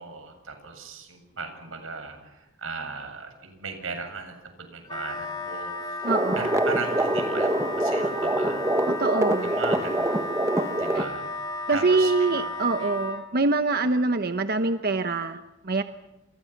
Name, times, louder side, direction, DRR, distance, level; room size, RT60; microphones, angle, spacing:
voice 1, 0.0-8.7 9.4-10.3 10.5-11.3 11.7-12.9, right 4 dB, 75° right, 5 dB, 7.6 m, -37 dB
Wind instrument woodwind instrument, 4.9-13.2, left 2 dB, 20° left, 2.8 m, -34 dB
sound 1, 6.0-11.1, right 1 dB, 15° right, 1.3 m, -25 dB
voice 2, 6.0-6.4 8.9-9.5 10.9-11.0 11.7-15.8, right 3 dB, 50° right, 8 dB, 1.0 m, -24 dB
30.0 x 28.5 x 6.0 m, 0.95 s
head